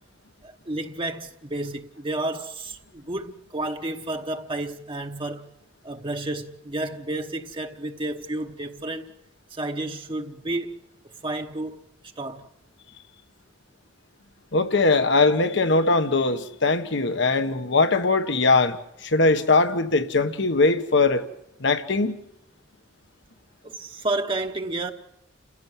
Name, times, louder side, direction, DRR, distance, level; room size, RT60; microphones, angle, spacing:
voice 1, 0.4-5.5 5.8-9.1 9.5-10.8 11.2-11.8 12.2-12.5 23.6-24.9, right 2 dB, 25° right, 1.0 m, -31 dB
voice 2, 14.5-21.2 21.6-22.1, left 3 dB, 65° left, 1.3 m, -21 dB
29.5 x 16.0 x 7.4 m
head